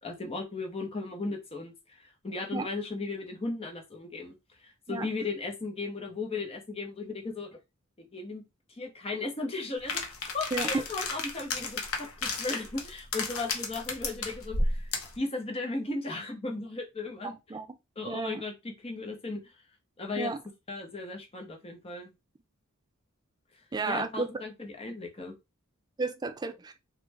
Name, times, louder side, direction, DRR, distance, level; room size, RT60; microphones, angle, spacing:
voice 1, 0.0-4.3 4.6-7.5 8.0-8.4 8.8-17.3 18.0-19.4 20.0-20.4 20.7-22.1 23.9-25.3, left 3 dB, 30° left, 0.8 m, -36 dB
sound 1, 9.9-15.2, left 3 dB, 80° left, 0.8 m, -32 dB
voice 2, 17.2-17.7 18.1-18.4 20.2-20.4 23.7-24.3 26.0-26.7, right 3 dB, 20° right, 0.3 m, -33 dB
3.1 x 2.2 x 3.3 m
head